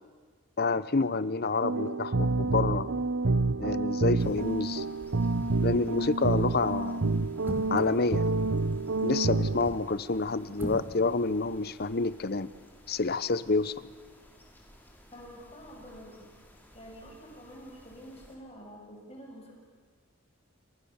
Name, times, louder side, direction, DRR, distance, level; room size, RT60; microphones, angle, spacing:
voice 1, 0.6-2.9 3.6-4.8 5.6-7.1 7.7-8.3 9.0-12.5 12.9-13.9, left 3 dB, 45° left, 16 dB, 0.8 m, -28 dB
sound 1, 1.6-9.7, right 3 dB, 70° right, 0.9 m, -28 dB
sound 2, 4.2-18.4, equal, 10° left, 4.4 m, -56 dB
sound 3, 6.3-6.6 7.4-8.0 9.4-9.9 10.5-10.9 11.2-11.3, equal, 10° right, 3.0 m, -39 dB
voice 2, 15.1-16.3 16.7-19.6, equal, 30° left, 0 dB, 7.0 m, -48 dB
30.0 x 26.0 x 7.2 m, 1.5 s
head